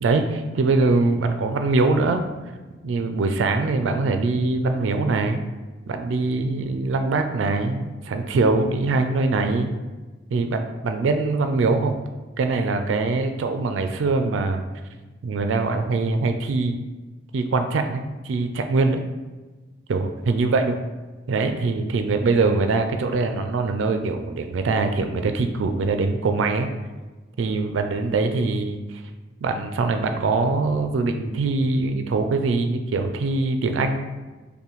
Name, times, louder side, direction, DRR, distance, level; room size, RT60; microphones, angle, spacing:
voice 1, 0.0-2.2 2.8-5.4 5.9-9.7 10.3-12.0 12.4-14.6 15.2-16.8 17.3-19.0 19.9-20.8 21.3-26.7 27.4-29.0 29.4-34.0, right 3 dB, 85° right, 6 dB, 0.3 m, -23 dB
5.4 x 2.2 x 3.0 m, 1.2 s
head